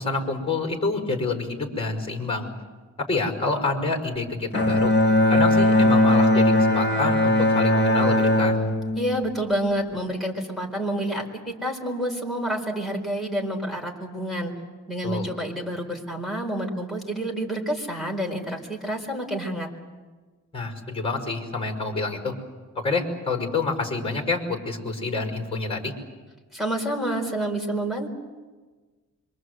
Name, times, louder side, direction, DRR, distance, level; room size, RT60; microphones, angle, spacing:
voice 1, 0.0-2.5 3.0-4.9 5.3-8.5 15.0-15.3 20.5-22.3 22.8-25.9, left 3 dB, 20° left, 3 dB, 5.3 m, -27 dB
Bowed string instrument, 4.5-10.0, left 1 dB, 35° left, 2.9 m, -20 dB
voice 2, 9.0-14.5 14.9-19.7 26.5-28.1, right 1 dB, ahead, 0 dB, 4.6 m, -28 dB
27.0 x 24.5 x 8.1 m, 1.3 s
wide cardioid pair, 155°, 31 cm